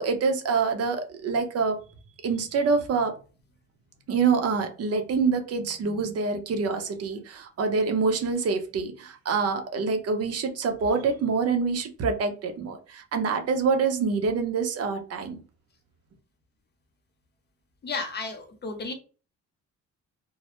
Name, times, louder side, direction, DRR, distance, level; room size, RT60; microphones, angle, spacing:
voice 1, 0.0-1.8 2.2-3.1 4.1-15.4, right 5 dB, 55° right, 0.6 m, -26 dB
voice 2, 17.8-18.9, left 3 dB, 35° left, 0.7 m, -33 dB
2.1 x 2.0 x 2.9 m
cardioid pair, 90°, 30 cm